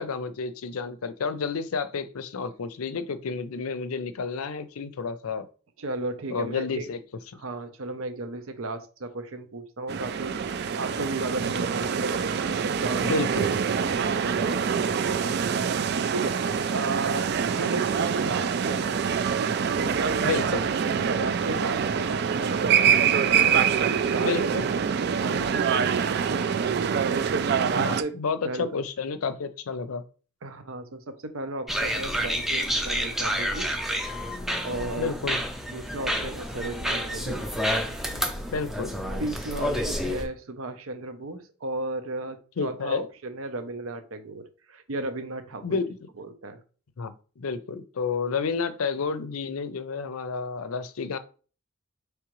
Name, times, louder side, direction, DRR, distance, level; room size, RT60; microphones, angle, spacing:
voice 1, 0.0-5.5 6.3-7.0 13.0-13.4 20.2-20.7 24.2-24.7 27.7-30.0 35.0-35.4 38.5-39.0 42.6-43.1 45.6-46.1 47.0-51.2, left 5 dB, 85° left, 12 dB, 0.5 m, -30 dB
voice 2, 5.8-6.8 7.4-13.1 13.8-16.3 16.7-19.2 19.8-20.5 21.2-24.4 25.1-27.1 27.6-28.1 28.4-28.7 30.4-33.7 34.6-35.1 35.7-37.4 39.2-45.8 46.2-46.6, right 2 dB, 75° right, 8 dB, 0.7 m, -35 dB
sound 1, 9.9-28.0, right 7 dB, 50° right, 0.3 m, -25 dB
sound 2, 31.7-40.3, equal, ahead, 0.5 m, -29 dB
4.8 x 3.2 x 3.0 m, 0.38 s
head